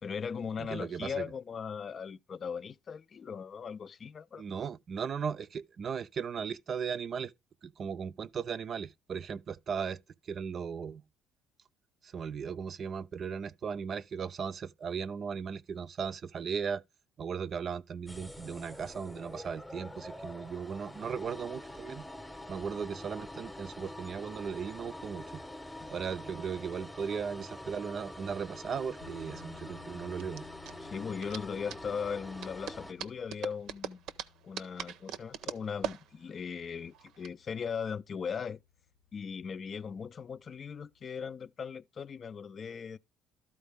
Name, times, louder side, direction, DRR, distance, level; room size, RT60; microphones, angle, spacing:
voice 1, 0.0-4.4 30.8-34.1 34.4-38.6 39.1-43.0, left 6 dB, 35° left, 0.4 m, -38 dB
voice 2, 0.6-1.3 4.4-7.3 7.6-11.0 12.0-16.8 17.2-22.0 22.5-25.4 25.9-30.5, right 6 dB, 40° right, 0.4 m, -37 dB
sound 1, 18.1-32.9, left 1 dB, 5° left, 0.8 m, -46 dB
sound 2, 28.4-37.3, right 10 dB, 70° right, 0.7 m, -43 dB
sound 3, 29.0-41.3, left 9 dB, 75° left, 0.8 m, -59 dB
13.0 x 4.4 x 3.4 m
cardioid pair, 115°, 0 cm